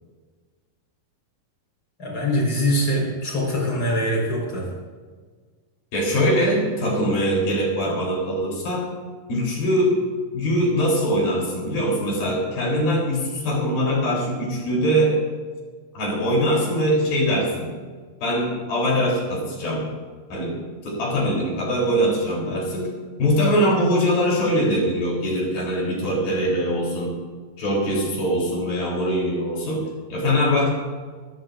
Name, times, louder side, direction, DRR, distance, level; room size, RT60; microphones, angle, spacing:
voice 1, 2.0-4.7, equal, 35° left, -2 dB, 5.3 m, -23 dB
voice 2, 5.9-8.9 9.3-9.9 10.3-15.2 15.9-17.7 18.2-19.9 20.3-20.6 20.8-22.9 23.2-27.2 27.6-29.9 30.1-30.7, equal, 75° left, -2 dB, 5.5 m, -22 dB
21.5 x 15.5 x 2.6 m, 1.5 s
omnidirectional pair, 4.3 m